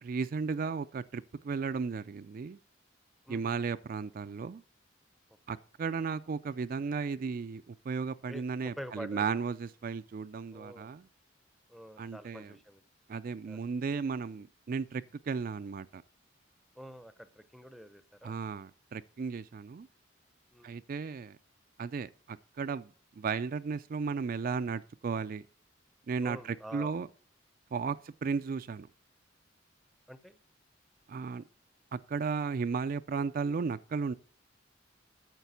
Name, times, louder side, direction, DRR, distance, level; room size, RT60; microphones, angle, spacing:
voice 1, 0.0-2.6 3.3-4.6 5.5-11.1 12.0-12.5 13.1-16.0 18.2-19.9 20.6-21.4 21.8-22.9 23.2-25.4 26.1-27.1 27.7-28.9 31.1-31.4 31.9-34.1, right 5 dB, 45° right, 0.4 m, -35 dB
voice 2, 3.3-3.6 8.3-9.3 10.5-10.9 11.7-12.8 13.5-13.6 16.8-18.3 20.5-20.8 26.2-26.9 27.9-28.0 30.1-30.4, equal, ahead, 0.6 m, -47 dB
9.1 x 6.6 x 6.9 m
head